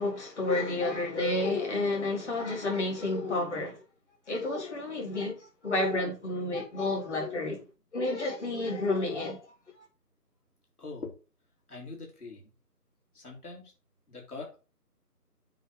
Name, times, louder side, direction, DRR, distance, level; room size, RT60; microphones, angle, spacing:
voice 1, 0.0-3.8 4.3-7.6 7.9-9.5, left 2 dB, 45° left, 3.7 m, -30 dB
voice 2, 10.8-11.1 11.7-12.5 13.1-13.7 14.1-14.6, left 3 dB, 65° left, 3.8 m, -42 dB
8.9 x 3.5 x 6.5 m
figure-of-eight pair, 170°, 48 cm